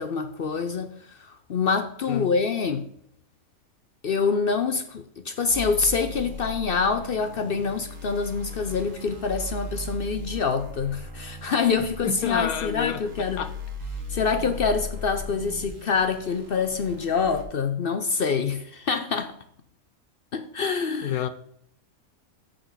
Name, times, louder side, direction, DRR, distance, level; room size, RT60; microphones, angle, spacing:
voice 1, 0.0-2.9 4.0-13.4 14.1-19.3 20.3-21.2, left 5 dB, 55° left, 0.7 m, -26 dB
sound 1, 5.5-17.4, equal, 65° right, 1.8 m, -37 dB
voice 2, 12.0-13.1 13.4-13.5 21.0-21.3, left 9 dB, 80° left, 1.2 m, -28 dB
14.0 x 4.9 x 3.9 m
omnidirectional pair, 1.5 m